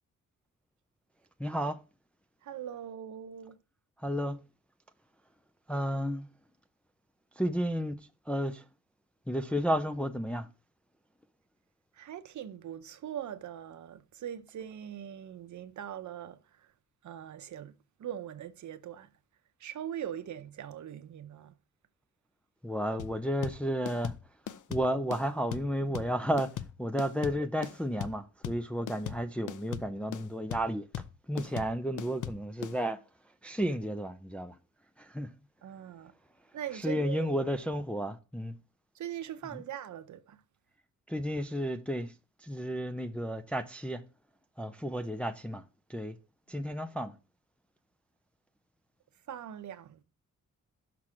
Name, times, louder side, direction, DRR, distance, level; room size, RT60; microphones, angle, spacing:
voice 1, 1.4-1.8 4.0-4.4 5.7-6.3 7.4-8.6 9.3-10.5 22.6-24.2 24.7-30.9 31.3-33.0 33.4-34.6 35.0-35.3 36.7-38.6 39.5-39.6 41.1-42.1 42.4-44.0 44.6-45.6 45.9-46.2 46.5-47.2, equal, 5° left, 0.4 m, -32 dB
voice 2, 2.4-3.6 11.9-16.4 17.0-17.7 18.0-19.1 19.6-21.5 35.6-36.1 36.5-37.4 38.9-40.4 49.3-50.0, right 10 dB, 70° right, 0.7 m, -41 dB
sound 1, 23.0-32.8, left 10 dB, 75° left, 0.6 m, -39 dB
6.0 x 5.9 x 4.9 m
wide cardioid pair, 170°, 31 cm